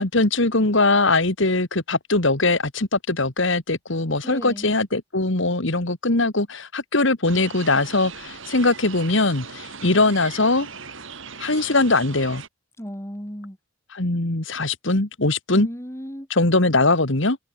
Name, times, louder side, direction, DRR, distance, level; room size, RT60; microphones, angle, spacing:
voice 1, 0.0-10.7 11.4-12.4 13.9-15.7 16.3-17.4, left 2 dB, 60° left, 2.0 m, -21 dB
voice 2, 4.2-4.7 12.8-13.6 15.5-16.3, equal, 10° left, 4.4 m, -35 dB
sound 1, 7.3-12.5, right 5 dB, 60° right, 5.7 m, -39 dB
head